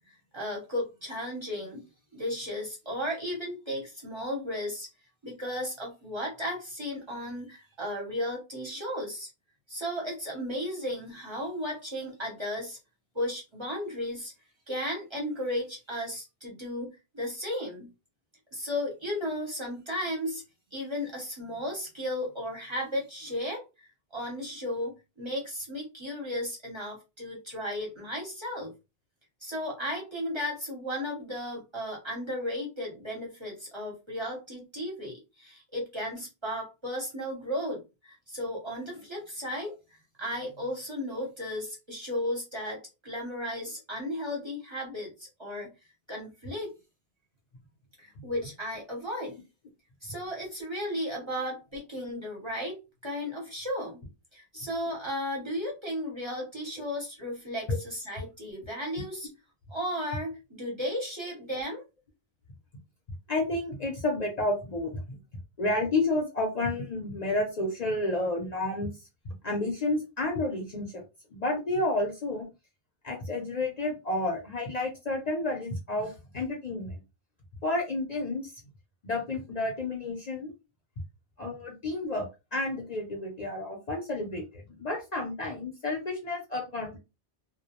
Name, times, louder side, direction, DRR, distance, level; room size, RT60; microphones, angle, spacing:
voice 1, 0.1-1.9 2.1-4.9 5.2-9.3 9.7-12.8 13.1-14.3 14.7-17.9 18.5-20.4 20.7-28.7 29.4-39.8 40.2-45.7 46.1-46.7 48.0-49.4 50.0-54.0 54.3-59.3 59.7-61.8, left 1 dB, 30° right, -3 dB, 0.8 m, -35 dB
voice 2, 63.3-65.2 65.6-68.9 69.4-71.0 71.3-72.5 73.0-77.0 77.6-78.5 79.0-80.5 81.4-87.0, left 2 dB, 45° left, 0 dB, 0.7 m, -30 dB
2.2 x 2.1 x 2.8 m, 0.26 s
omnidirectional pair, 1.1 m